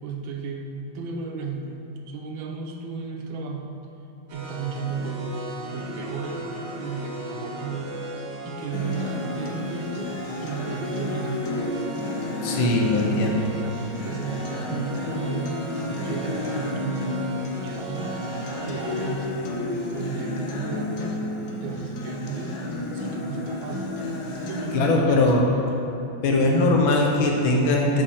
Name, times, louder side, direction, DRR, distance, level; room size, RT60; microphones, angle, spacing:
voice 1, 0.0-3.7 4.3-6.4 6.8-7.9 8.4-10.2 10.4-11.5 12.5-15.6 15.9-18.2 18.6-19.3 19.9-21.2 21.6-22.7 22.9-23.9 24.4-25.8, right 5 dB, 80° right, 3 dB, 1.5 m, -34 dB
sound 1, 4.3-19.1, right 2 dB, 60° right, 1.8 m, -37 dB
Acoustic guitar, 8.7-24.7, left 2 dB, 60° left, 1.2 m, -31 dB
voice 2, 12.4-13.5 24.7-25.5 26.2-28.0, left 2 dB, 80° left, 0 dB, 1.8 m, -20 dB
6.7 x 5.6 x 6.3 m, 3.0 s
omnidirectional pair, 2.2 m